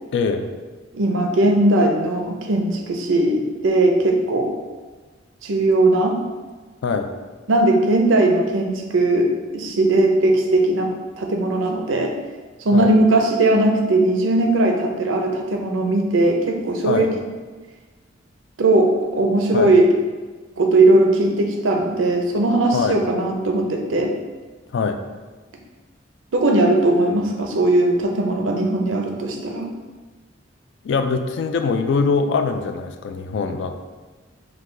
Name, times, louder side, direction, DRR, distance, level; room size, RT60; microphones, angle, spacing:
voice 1, 0.1-0.5 6.8-7.1 12.7-12.9 16.8-17.1 19.5-19.7 22.7-23.0 24.7-25.0 30.8-33.8, left 4 dB, 65° left, 7 dB, 0.3 m, -22 dB
voice 2, 0.9-4.5 5.4-6.2 7.5-12.1 12.6-17.1 18.6-19.9 20.6-24.1 26.3-29.7, right 2 dB, 85° right, 2 dB, 0.6 m, -18 dB
4.7 x 2.3 x 3.7 m, 1.3 s
head